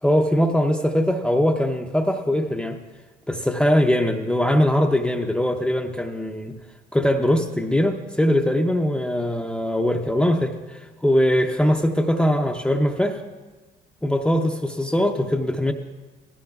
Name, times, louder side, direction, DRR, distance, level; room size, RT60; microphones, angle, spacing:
voice 1, 0.0-2.8 3.3-6.6 6.9-13.2 14.0-15.7, equal, 5° left, 3 dB, 0.6 m, -21 dB
18.5 x 14.5 x 2.3 m, 1.2 s
cardioid pair, 110°, 17 cm